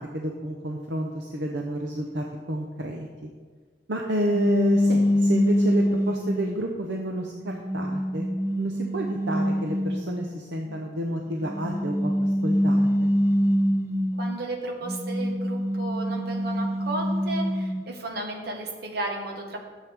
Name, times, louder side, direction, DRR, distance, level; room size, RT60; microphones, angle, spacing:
voice 1, 0.0-3.3 3.9-8.3 8.6-12.9, right 1 dB, 80° right, 1 dB, 0.8 m, -30 dB
sound 1, 4.3-6.5 7.2-10.3 11.4-14.4 14.8-17.8, equal, 15° right, 0.7 m, -24 dB
voice 2, 14.2-19.6, right 2 dB, 65° right, 1 dB, 1.5 m, -34 dB
13.0 x 7.5 x 3.5 m, 1.5 s
head